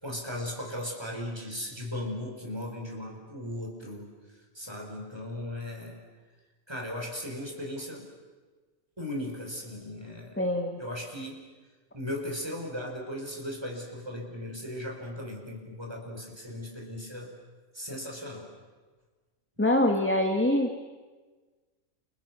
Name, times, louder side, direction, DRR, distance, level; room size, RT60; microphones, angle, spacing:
voice 1, 0.0-4.1 4.5-6.0 6.7-8.1 9.0-11.4 11.9-17.3 17.7-18.5, left 1 dB, 15° right, 1 dB, 5.3 m, -37 dB
voice 2, 10.4-10.8 19.6-20.8, left 1 dB, 10° left, 3 dB, 1.7 m, -25 dB
30.0 x 30.0 x 6.3 m, 1.3 s
omnidirectional pair, 1.5 m